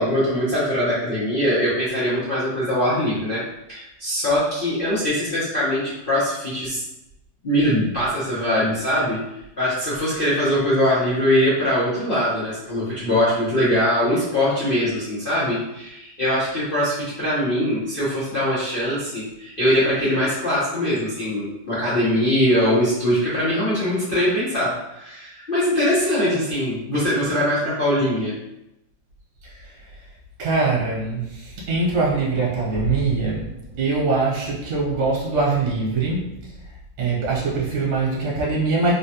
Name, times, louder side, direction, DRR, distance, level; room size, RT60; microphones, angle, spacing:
voice 1, 0.0-3.4 3.7-6.8 7.4-9.2 9.6-28.3, equal, 70° left, -10 dB, 0.5 m, -22 dB
voice 2, 30.4-33.5 33.8-36.3 37.0-38.9, right 3 dB, 65° right, -4 dB, 1.3 m, -22 dB
3.6 x 2.1 x 2.7 m, 0.86 s
omnidirectional pair, 2.1 m